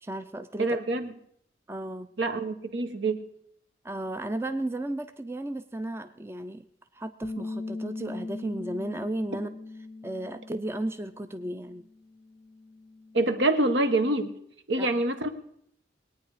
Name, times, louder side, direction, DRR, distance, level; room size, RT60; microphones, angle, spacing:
voice 1, 0.0-0.8 1.7-2.1 3.8-6.6 6.9-9.5 10.0-11.9 14.8-14.9, right 1 dB, 15° right, 10 dB, 0.4 m, -34 dB
voice 2, 0.6-1.1 2.2-3.3 13.1-14.3 14.7-15.3, right 2 dB, 75° right, 8 dB, 1.3 m, -26 dB
Bass guitar, 7.2-13.5, left 3 dB, 40° left, 0.5 m, -40 dB
21.0 x 9.3 x 4.9 m, 0.69 s
head